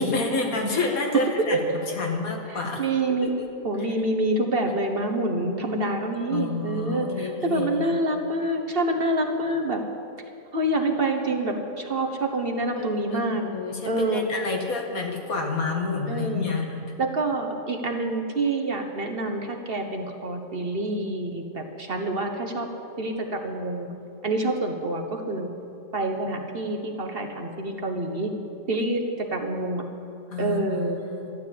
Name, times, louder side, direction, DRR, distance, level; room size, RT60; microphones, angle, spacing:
voice 1, 0.0-3.3 3.8-3.9 6.3-8.0 12.8-16.8 30.3-31.3, left 3 dB, 80° left, 1 dB, 2.3 m, -29 dB
voice 2, 2.8-3.3 3.6-9.8 10.5-13.4 13.9-14.2 16.1-16.6 17.0-22.7 23.0-23.9 24.2-25.5 25.9-28.3 28.7-29.8 30.4-31.0, right 2 dB, 45° right, 3 dB, 1.4 m, -27 dB
13.0 x 11.5 x 8.6 m, 2.6 s
omnidirectional pair, 1.5 m